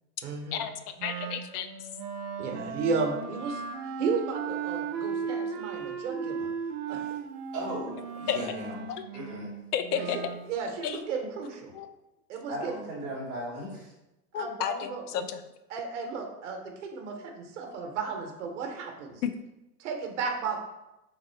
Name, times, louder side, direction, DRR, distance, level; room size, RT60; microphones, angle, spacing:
voice 1, 0.2-0.6 2.4-3.6 4.0-6.5 6.9-7.0 9.9-10.1 10.5-11.7 12.3-12.8 14.4-15.0 15.7-19.2 19.8-20.6, right 5 dB, 50° right, 3 dB, 0.8 m, -33 dB
voice 2, 1.0-1.7 8.3-8.4 8.9-9.0 9.7-10.2 10.8-11.0 11.7-11.9 14.3-15.4 19.2-19.3, left 9 dB, 75° left, 10 dB, 0.5 m, -31 dB
Wind instrument woodwind instrument, 1.0-10.5, right 6 dB, 85° right, 0.7 m, -36 dB
voice 3, 7.5-8.8 9.1-9.5 12.5-13.9, right 1 dB, 15° right, -5 dB, 0.8 m, -37 dB
3.6 x 2.7 x 4.2 m, 0.95 s
supercardioid pair, 180°, 46 cm